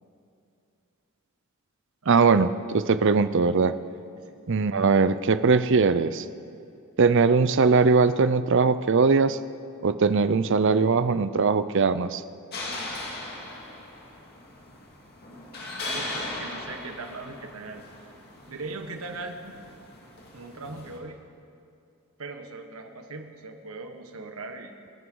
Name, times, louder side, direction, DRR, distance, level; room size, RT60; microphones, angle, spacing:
voice 1, 2.1-3.7 4.5-6.2 7.0-9.4 9.8-12.2, right 4 dB, 60° right, 13 dB, 0.6 m, -21 dB
sound 1, 12.5-21.0, left 2 dB, 45° left, 2.3 m, -38 dB
voice 2, 15.9-17.8 18.5-19.6 20.3-21.2 22.2-24.7, right 3 dB, 85° right, 5 dB, 1.5 m, -39 dB
28.5 x 11.0 x 3.9 m, 2.5 s
head